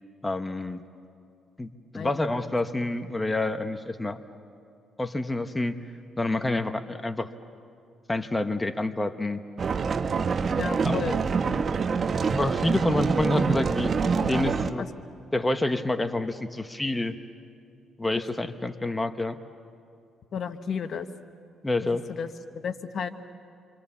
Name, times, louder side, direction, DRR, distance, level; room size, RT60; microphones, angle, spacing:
voice 1, 0.2-0.8 1.6-4.2 5.0-5.8 6.2-7.3 8.1-9.4 10.8-11.0 12.3-13.9 14.3-14.9 15.3-17.2 18.0-19.4 21.6-22.0, left 2 dB, 15° left, 8 dB, 1.1 m, -28 dB
sound 1, 9.6-14.7, right 5 dB, 45° right, 1.1 m, -26 dB
voice 2, 10.6-11.2 14.8-14.9 20.3-21.1 22.1-22.3 22.6-23.1, left 7 dB, 55° left, 9 dB, 1.2 m, -32 dB
28.5 x 25.0 x 7.1 m, 2.4 s
cardioid pair, 90°, 0 cm